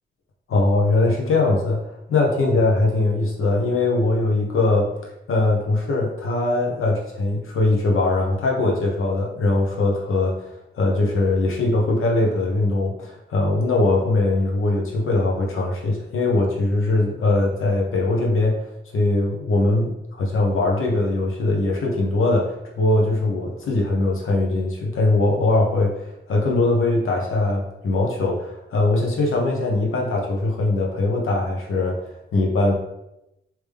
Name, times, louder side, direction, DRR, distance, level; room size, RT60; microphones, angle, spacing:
voice 1, 0.5-4.9 5.3-18.6 18.9-32.7, left 2 dB, 80° left, -1 dB, 1.0 m, -21 dB
3.4 x 3.0 x 3.4 m, 0.87 s
cardioid pair, 85°, 21 cm